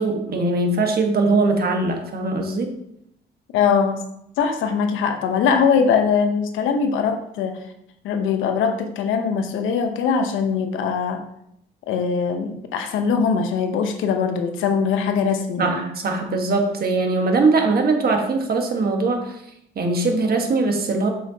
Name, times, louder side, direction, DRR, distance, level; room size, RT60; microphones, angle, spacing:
voice 1, 0.0-2.7 15.6-19.4 19.7-21.1, right 3 dB, 50° right, 3 dB, 1.4 m, -21 dB
voice 2, 3.5-4.0 4.4-7.6 8.0-11.2 11.9-15.8, left 6 dB, 90° left, 7 dB, 0.9 m, -21 dB
7.3 x 5.7 x 2.8 m, 0.77 s
cardioid pair, 90°, 20 cm